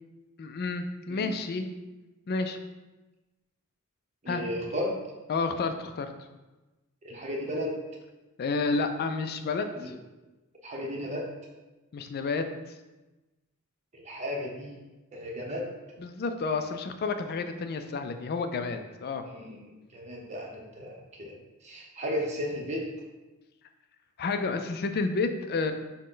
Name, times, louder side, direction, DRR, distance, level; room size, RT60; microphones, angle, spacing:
voice 1, 0.4-1.7 2.3-2.6 4.3-4.4 5.3-6.1 8.4-9.9 11.9-12.5 16.0-19.2 24.2-25.7, left 4 dB, 45° left, 7 dB, 0.4 m, -30 dB
voice 2, 4.2-5.0 7.0-7.7 9.8-9.9 10.6-11.3 13.9-14.8 15.1-15.7 19.2-19.6 19.9-21.3 21.6-22.8, equal, 30° right, -1 dB, 0.8 m, -34 dB
6.2 x 2.2 x 3.8 m, 1.1 s
head